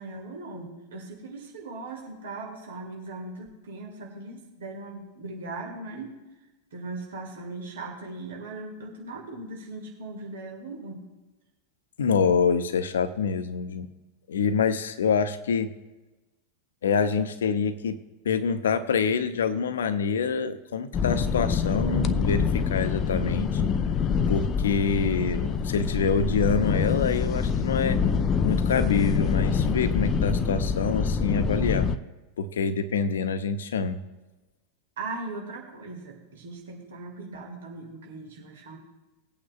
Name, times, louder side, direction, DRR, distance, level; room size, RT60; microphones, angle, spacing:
voice 1, 0.0-6.1 6.7-11.0 35.0-38.8, right 3 dB, 60° right, 0 dB, 2.1 m, -39 dB
voice 2, 12.0-13.9 14.3-15.7 16.8-18.0 18.2-23.6 24.3-28.0 28.4-31.9 32.4-34.0, left 5 dB, 65° left, 11 dB, 0.8 m, -26 dB
sound 1, 20.9-32.0, left 6 dB, 30° left, 0.5 m, -25 dB
19.5 x 8.7 x 2.4 m, 1.1 s
figure-of-eight pair, 90°, 0 cm